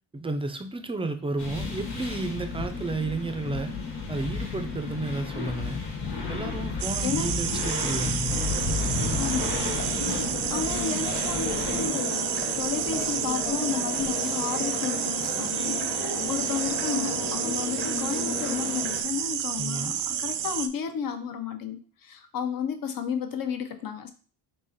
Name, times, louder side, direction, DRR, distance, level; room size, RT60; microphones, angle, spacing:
voice 1, 0.1-3.7 4.1-5.8 6.3-8.4 19.6-19.9, right 2 dB, 15° right, 8 dB, 0.4 m, -32 dB
sound 1, 1.4-11.9, left 4 dB, 90° left, 1.5 m, -32 dB
sound 2, 6.8-20.7, right 10 dB, 75° right, 0.5 m, -30 dB
sound 3, 8.3-19.0, left 3 dB, 30° left, 1.1 m, -34 dB
voice 2, 9.2-9.6 10.5-24.1, left 7 dB, 55° left, 8 dB, 0.7 m, -32 dB
3.8 x 2.9 x 4.1 m, 0.41 s
cardioid pair, 110°, 41 cm